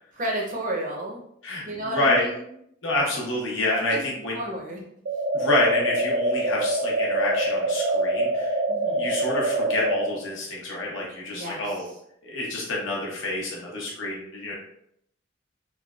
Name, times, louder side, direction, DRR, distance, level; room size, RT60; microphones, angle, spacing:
voice 1, 0.2-1.2 1.6-2.4 3.9-4.0 4.3-4.8 8.7-9.1 11.3-11.9, right 1 dB, 40° right, -1 dB, 0.6 m, -32 dB
voice 2, 1.9-2.2 2.8-4.4 5.3-8.6 8.9-11.9 12.2-14.5, left 2 dB, 85° left, -3 dB, 0.9 m, -28 dB
sound 1, 5.1-10.1, right 1 dB, 90° right, 0.5 m, -25 dB
3.2 x 2.2 x 2.3 m, 0.72 s
head